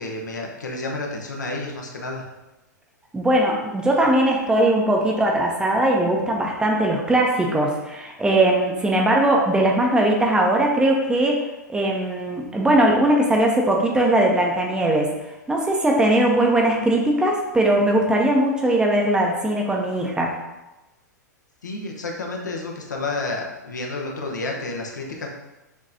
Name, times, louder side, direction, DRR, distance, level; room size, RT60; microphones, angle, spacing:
voice 1, 0.0-2.3 21.6-25.3, left 2 dB, 70° left, 0 dB, 0.9 m, -30 dB
voice 2, 3.1-11.4 11.7-15.1 15.5-20.3, right 1 dB, 10° right, -1 dB, 0.7 m, -20 dB
6.4 x 3.1 x 2.7 m, 1.0 s
figure-of-eight pair, 100°, 10 cm